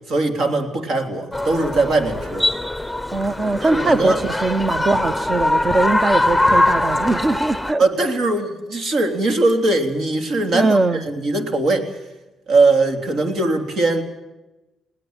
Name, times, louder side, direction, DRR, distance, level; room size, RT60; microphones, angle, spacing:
voice 1, 0.1-2.5 3.6-4.2 7.8-11.9 12.5-14.0, right 2 dB, 65° right, 6 dB, 3.4 m, -20 dB
sound 1, 1.3-7.7, left 1 dB, ahead, 0.9 m, -22 dB
voice 2, 3.1-7.8 10.5-11.0, right 2 dB, 35° right, 13 dB, 0.8 m, -20 dB
21.0 x 17.5 x 9.0 m, 1.0 s
cardioid pair, 90°, 0 cm